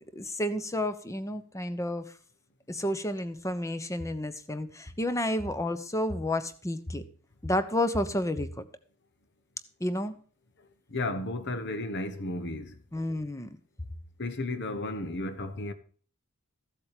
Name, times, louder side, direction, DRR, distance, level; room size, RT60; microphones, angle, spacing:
voice 1, 0.1-2.0 2.7-7.0 7.4-8.6 9.8-10.1 12.9-13.6, left 1 dB, 15° left, 0.9 m, -31 dB
voice 2, 10.9-12.7 14.2-15.7, left 2 dB, 50° left, 1.3 m, -33 dB
15.0 x 7.8 x 5.0 m
head